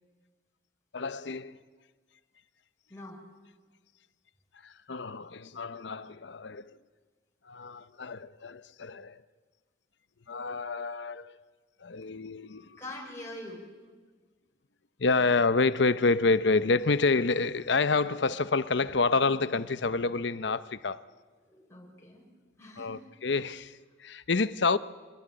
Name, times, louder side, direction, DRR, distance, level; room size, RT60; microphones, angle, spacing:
voice 1, 0.9-1.6 4.6-6.8 7.5-9.2 10.3-11.4 11.8-12.8 15.0-21.0 22.8-24.8, left 3 dB, 60° left, 0.7 m, -28 dB
voice 2, 2.9-3.2 12.8-13.6 21.4-22.2 22.6-23.0 23.2-23.5, left 1 dB, 15° left, 5.2 m, -44 dB
26.5 x 20.5 x 8.8 m
head